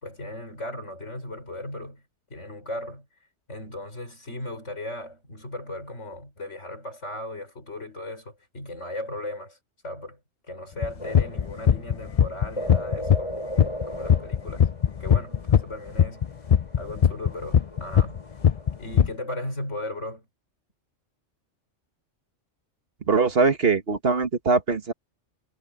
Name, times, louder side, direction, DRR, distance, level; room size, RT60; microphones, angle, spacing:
voice 1, 0.0-2.0 2.3-3.1 3.5-9.6 9.8-10.2 10.5-13.5 13.9-14.7 15.0-16.2 16.8-18.2 18.8-20.3, left 1 dB, 75° left, 5.9 m, -36 dB
sound 1, 10.8-13.3 13.6-15.6 16.0-18.2 18.4-19.1, left 9 dB, 50° left, 0.4 m, -19 dB
sound 2, 11.0-18.9, equal, 25° left, 6.2 m, -38 dB
voice 2, 23.1-24.9, right 4 dB, 55° right, 1.7 m, -22 dB
omnidirectional pair, 1.2 m